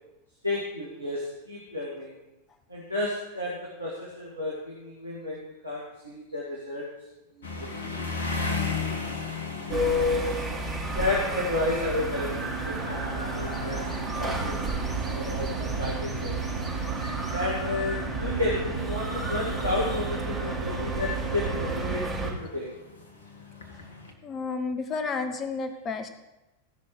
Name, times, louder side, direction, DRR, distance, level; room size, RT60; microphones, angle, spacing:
voice 1, 0.4-2.2 2.7-6.9 7.4-8.0 9.5-10.4 10.9-13.8 14.2-14.7 15.0-16.6 17.3-22.7, left 2 dB, 85° right, -4 dB, 2.0 m, -31 dB
sound 1, 7.4-24.1, left 4 dB, 65° left, 1.5 m, -38 dB
sound 2, 9.7-22.3, right 3 dB, 15° right, 4.2 m, -32 dB
sound 3, 11.9-21.9, right 5 dB, 50° right, 2.4 m, -39 dB
voice 2, 24.2-26.1, left 4 dB, 30° left, 8 dB, 1.2 m, -31 dB
17.0 x 6.1 x 4.7 m, 0.98 s
figure-of-eight pair, 90°, 0 cm